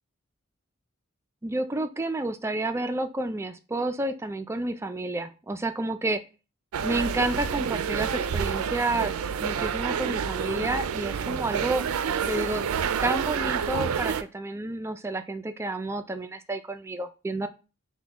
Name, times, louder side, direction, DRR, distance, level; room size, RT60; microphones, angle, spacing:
voice 1, 1.4-6.2 6.8-9.1 9.4-11.8 12.2-12.6 13.0-17.5, right 2 dB, 10° right, 9 dB, 0.3 m, -30 dB
sound 1, 6.7-14.2, right 7 dB, 85° right, 0.4 m, -28 dB
5.9 x 2.2 x 3.5 m, 0.32 s
head